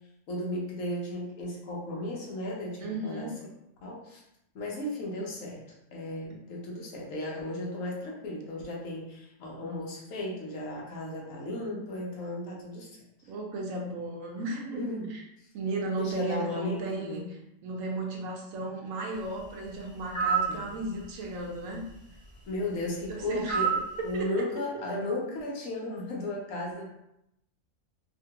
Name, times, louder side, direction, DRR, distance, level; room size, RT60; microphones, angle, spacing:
voice 1, 0.3-3.3 3.8-4.2 4.5-13.0 14.7-15.1 16.0-17.2 20.5-20.6 22.5-26.9, left 1 dB, 70° left, -2 dB, 1.1 m, -35 dB
voice 2, 2.8-3.3 13.3-14.8 15.1-15.2 15.5-17.2 17.6-21.8 23.1-23.7 24.0-24.4, right 2 dB, 75° right, 0 dB, 1.0 m, -35 dB
sound 1, 20.1-20.5 23.5-23.9, right 6 dB, 25° left, 1.0 m, -26 dB
2.8 x 2.5 x 2.8 m, 0.82 s
omnidirectional pair, 1.4 m